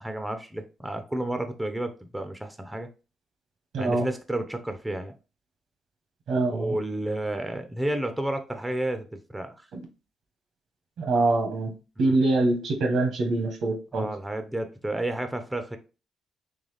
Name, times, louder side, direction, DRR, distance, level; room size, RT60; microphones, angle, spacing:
voice 1, 0.0-2.9 3.8-5.1 6.5-9.1 9.3-9.5 12.0-12.2 13.9-15.8, right 1 dB, 10° right, 0.6 m, -31 dB
voice 2, 3.7-4.1 6.3-6.7 9.7-9.9 11.0-11.7 12.0-14.1, right 2 dB, 70° right, 1.2 m, -24 dB
3.9 x 3.3 x 3.3 m
cardioid pair, 90°, 0 cm